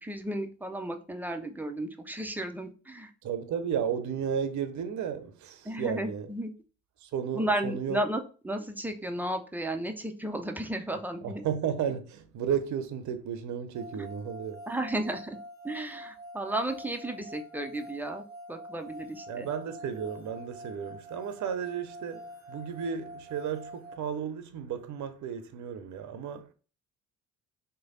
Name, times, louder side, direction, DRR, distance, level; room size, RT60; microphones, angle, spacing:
voice 1, 0.0-3.1 5.6-6.5 7.3-11.4 14.0-14.1 14.7-15.4 15.6-18.2 18.5-19.5, right 1 dB, 5° right, 0.5 m, -33 dB
voice 2, 3.2-6.3 7.0-8.0 11.2-14.6 19.3-26.5, right 8 dB, 45° right, 0.7 m, -33 dB
sound 1, 13.7-24.0, equal, 60° left, 1.1 m, -46 dB
3.2 x 2.2 x 3.8 m
hypercardioid pair, 50°, 40 cm